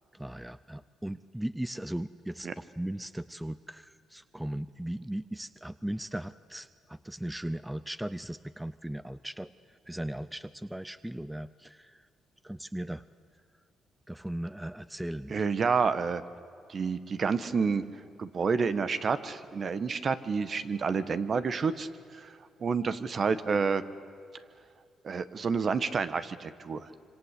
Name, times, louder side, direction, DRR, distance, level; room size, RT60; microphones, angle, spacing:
voice 1, 0.1-12.0 12.4-13.0 14.1-15.4, right 1 dB, 5° right, 15 dB, 0.6 m, -38 dB
voice 2, 15.3-16.2 16.7-17.8 18.2-23.8 25.0-26.9, right 5 dB, 45° right, 13 dB, 1.3 m, -29 dB
26.0 x 26.0 x 8.4 m, 2.5 s
cardioid pair, 90°, 0 cm